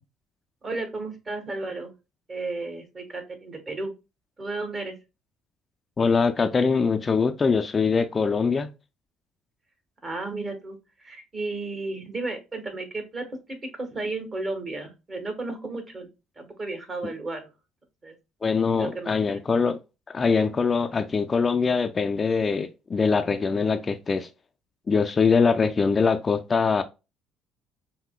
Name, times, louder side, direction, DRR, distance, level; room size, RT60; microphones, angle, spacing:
voice 1, 0.6-1.9 2.3-3.9 4.4-4.9 10.0-16.1 16.4-17.5 18.0-18.1 18.8-19.1, right 2 dB, 35° right, 1.4 m, -33 dB
voice 2, 6.0-8.7 17.0-17.1 18.4-19.8 20.1-24.3 24.9-26.8, left 5 dB, 35° left, 0.4 m, -23 dB
5.7 x 2.1 x 2.3 m
supercardioid pair, 70°, 0 cm